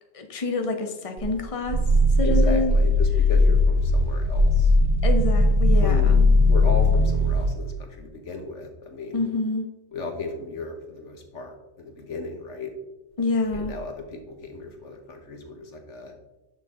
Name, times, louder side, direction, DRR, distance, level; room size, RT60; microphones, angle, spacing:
voice 1, 0.1-1.8 2.2-2.7 5.0-6.4 9.1-9.7 13.2-13.8, left 3 dB, 30° left, 4 dB, 1.0 m, -27 dB
Growling, 1.2-7.5, left 1 dB, 55° right, 1.5 m, -19 dB
voice 2, 2.2-4.7 5.8-6.1 6.5-9.2 9.9-12.7 13.5-16.1, left 3 dB, 65° left, 4 dB, 1.7 m, -35 dB
11.0 x 6.5 x 3.8 m, 1.0 s
omnidirectional pair, 1.4 m